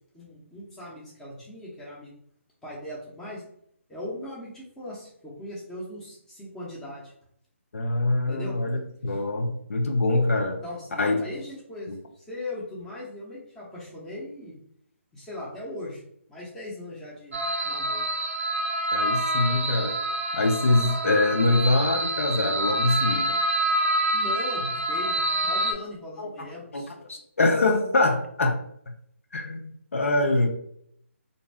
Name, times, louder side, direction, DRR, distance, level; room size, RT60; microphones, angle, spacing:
voice 1, 0.1-2.1 2.6-3.4 3.9-7.0 8.3-8.6 9.1-9.2 10.6-14.6 15.1-16.0 16.3-17.4 17.6-18.1 24.1-26.9 30.3-30.4, left 1 dB, 5° left, -6 dB, 0.7 m, -39 dB
voice 2, 7.7-10.6 11.0-11.2 11.9-12.0 18.9-20.0 20.3-23.4 26.2-26.5 26.7-26.8 27.1-28.6 28.9-29.0 29.3-30.5, left 2 dB, 75° left, 4 dB, 0.5 m, -24 dB
sound 1, 17.3-25.7, right 1 dB, 65° right, 0.5 m, -27 dB
2.6 x 2.1 x 3.3 m, 0.70 s
figure-of-eight pair, 150°, 7 cm